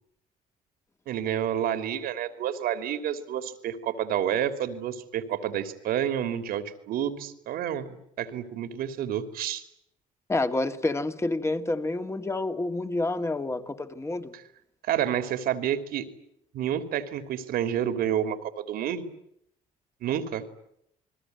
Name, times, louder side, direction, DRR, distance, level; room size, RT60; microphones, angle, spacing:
voice 1, 1.1-9.6 14.3-14.4 14.8-16.1 16.5-19.0 20.0-20.4, right 10 dB, 75° right, 9 dB, 3.0 m, -29 dB
voice 2, 10.3-14.3, left 2 dB, 15° left, 8 dB, 2.1 m, -28 dB
29.0 x 21.5 x 9.4 m, 0.75 s
cardioid pair, 100°, 15 cm